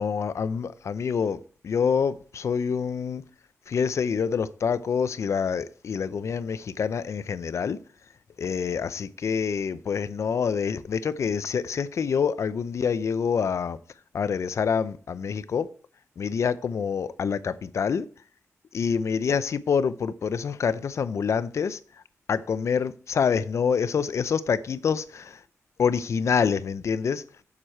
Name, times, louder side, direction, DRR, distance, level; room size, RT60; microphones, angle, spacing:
voice 1, 0.0-3.2 3.7-7.8 8.4-13.8 14.1-15.7 16.2-18.1 18.7-21.8 22.3-25.4 25.8-27.2, left 6 dB, 70° left, 0.5 m, -26 dB
7.3 x 6.3 x 4.4 m
cardioid pair, 85°, 5 cm